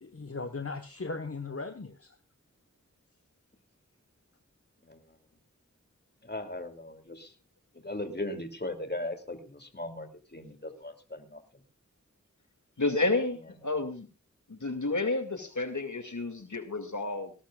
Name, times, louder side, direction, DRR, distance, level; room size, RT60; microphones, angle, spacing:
voice 1, 0.0-2.2, left 3 dB, 50° left, 9 dB, 1.2 m, -38 dB
voice 2, 6.2-7.3 7.7-11.6, left 1 dB, 35° left, 6 dB, 2.8 m, -38 dB
voice 3, 12.8-14.1 14.5-17.3, left 2 dB, 80° left, 7 dB, 2.3 m, -30 dB
18.5 x 18.0 x 2.4 m, 0.31 s
wide cardioid pair, 45°, 29 cm